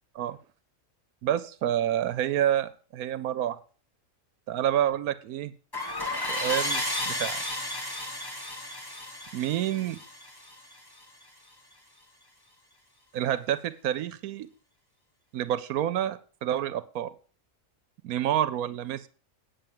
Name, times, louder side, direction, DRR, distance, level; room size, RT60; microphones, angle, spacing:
voice 1, 1.2-3.6 4.5-5.5 6.2-7.4 9.3-10.0 13.1-14.5 15.3-17.1 18.0-19.1, right 11 dB, 90° right, 14 dB, 1.2 m, -28 dB
sound 1, 5.7-11.0, left 1 dB, 15° left, 1.6 m, -33 dB
9.1 x 7.3 x 7.4 m, 0.40 s
omnidirectional pair, 1.5 m